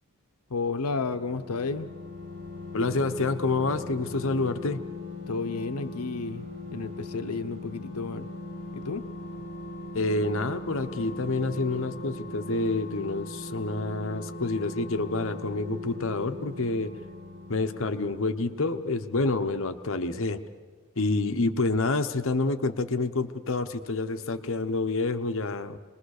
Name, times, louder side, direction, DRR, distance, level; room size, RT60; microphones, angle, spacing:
voice 1, 0.5-1.9 5.3-8.3 8.7-9.0, left 4 dB, 85° left, 10 dB, 0.8 m, -32 dB
sound 1, 0.8-19.0 19.3-19.4, left 2 dB, 80° right, 6.5 m, -40 dB
voice 2, 2.7-4.8 9.9-16.9 17.5-20.4 21.0-25.8, left 3 dB, 60° left, 9 dB, 1.0 m, -28 dB
27.0 x 21.0 x 6.6 m, 1.5 s
head